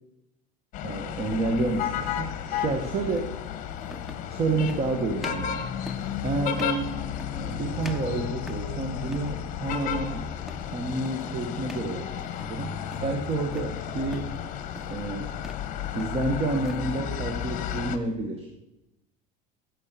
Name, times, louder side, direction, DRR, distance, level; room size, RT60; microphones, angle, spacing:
sound 1, 0.7-18.0, left 9 dB, 45° left, 1.3 m, -33 dB
voice 1, 0.8-3.3 4.3-5.6 6.2-7.0 7.4-10.3 10.7-14.3 14.9-15.3 15.9-18.5, right 3 dB, 30° right, 4 dB, 1.4 m, -29 dB
sound 2, 1.7-1.9 3.2-3.3 3.9-4.3 4.7-4.9 5.2-5.5 5.9-6.1 6.5-6.8 7.2-7.5 7.8-8.8 9.1-9.4 9.6-10.0 10.5-10.7 11.1-11.3 11.7-11.9 12.2-12.6 12.9-13.7 14.1-14.4 14.7-15.0 15.3-15.7 16.0-16.9, equal, ahead, 0.8 m, -44 dB
15.0 x 7.6 x 6.9 m, 0.94 s
cardioid pair, 135°, 19 cm